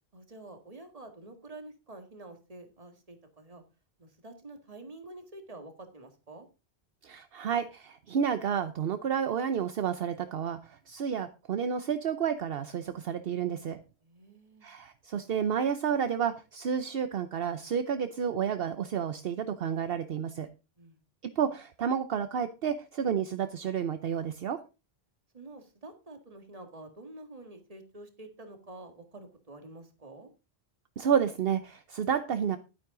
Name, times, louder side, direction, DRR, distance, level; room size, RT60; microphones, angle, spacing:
voice 1, 0.1-3.6 4.0-6.5 14.0-14.7 20.8-21.0 25.3-30.3, right 2 dB, 35° right, 6 dB, 1.9 m, -48 dB
voice 2, 7.0-13.8 14.6-20.5 21.4-24.6 31.0-32.6, right 7 dB, 65° right, 10 dB, 0.9 m, -30 dB
11.5 x 9.4 x 3.8 m, 0.30 s
omnidirectional pair, 1.1 m